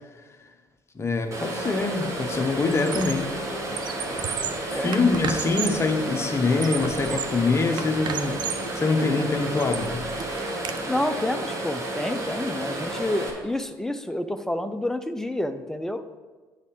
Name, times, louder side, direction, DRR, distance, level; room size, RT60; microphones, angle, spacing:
voice 1, 0.9-3.3 3.9-4.4 4.7-8.4 8.7-10.1, left 3 dB, 25° left, 5 dB, 1.1 m, -24 dB
sound 1, 1.3-13.3, right 1 dB, 30° right, 1.8 m, -32 dB
Squeak, 1.5-1.8 2.1-3.3 3.6-5.9 6.4-7.4 7.8-8.7 9.2-10.8, right 8 dB, 45° right, 0.6 m, -34 dB
voice 2, 10.9-16.0, left 1 dB, 5° left, 8 dB, 0.6 m, -29 dB
9.4 x 4.1 x 5.3 m, 1.3 s
figure-of-eight pair, 50°, 10 cm